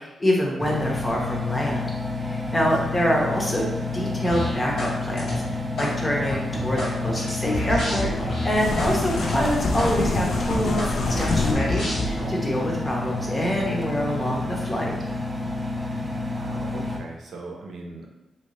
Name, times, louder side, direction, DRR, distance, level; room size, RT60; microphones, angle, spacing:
voice 1, 0.0-1.9 2.2-14.9, equal, 20° left, -2 dB, 0.7 m, -26 dB
Engine, 0.6-17.0, left 2 dB, 15° right, 0.5 m, -30 dB
sound 1, 4.3-4.9 5.2-5.9 6.3-8.9 9.2-9.4 9.8-9.9 10.3-12.3, left 1 dB, 80° left, 1.3 m, -29 dB
sound 2, 8.5-11.5, left 3 dB, 60° left, 0.4 m, -26 dB
voice 2, 15.9-18.1, right 3 dB, 70° right, 0 dB, 0.6 m, -40 dB
3.2 x 2.8 x 3.1 m, 0.99 s
wide cardioid pair, 130°, 0 cm